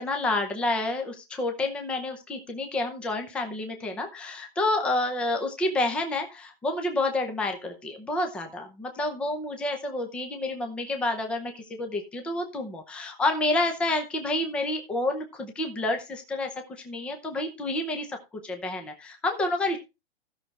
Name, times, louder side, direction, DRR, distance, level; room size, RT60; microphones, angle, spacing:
voice 1, 0.0-18.2 18.4-19.8, left 2 dB, 5° left, 4 dB, 0.7 m, -29 dB
16.0 x 6.2 x 3.2 m, 0.26 s
hypercardioid pair, 175°, 31 cm